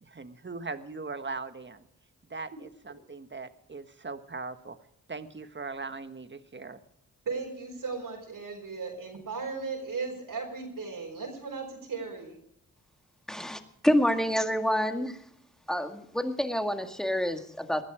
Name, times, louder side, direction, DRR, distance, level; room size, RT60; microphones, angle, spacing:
voice 1, 0.0-1.8 2.3-4.8 5.1-6.8, right 4 dB, 35° right, 10 dB, 1.5 m, -40 dB
voice 2, 7.2-12.4, right 4 dB, 75° right, 0 dB, 4.8 m, -36 dB
voice 3, 13.3-15.2 15.7-17.8, equal, ahead, 6 dB, 2.0 m, -28 dB
19.5 x 12.5 x 5.0 m, 0.73 s
cardioid pair, 55°, 34 cm